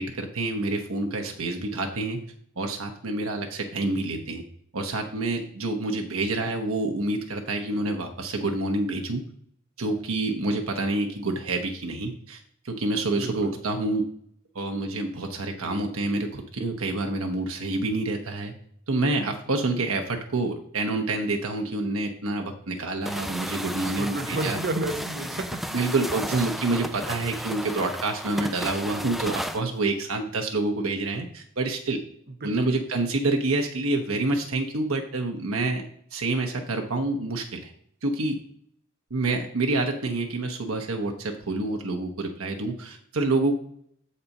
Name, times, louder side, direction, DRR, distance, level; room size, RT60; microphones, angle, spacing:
voice 1, 0.0-2.2 2.6-4.4 4.7-9.2 9.8-12.4 12.6-14.1 14.5-18.5 18.9-24.6 25.7-32.0 32.4-35.8 36.1-37.7 38.0-38.4 39.1-43.6, right 2 dB, 90° right, 3 dB, 0.9 m, -27 dB
voice 2, 13.1-13.6 24.0-25.6 32.4-32.8, right 2 dB, 50° right, 7 dB, 0.9 m, -31 dB
sound 1, 23.0-29.6, equal, ahead, 0.3 m, -34 dB
7.1 x 4.2 x 5.3 m, 0.65 s
head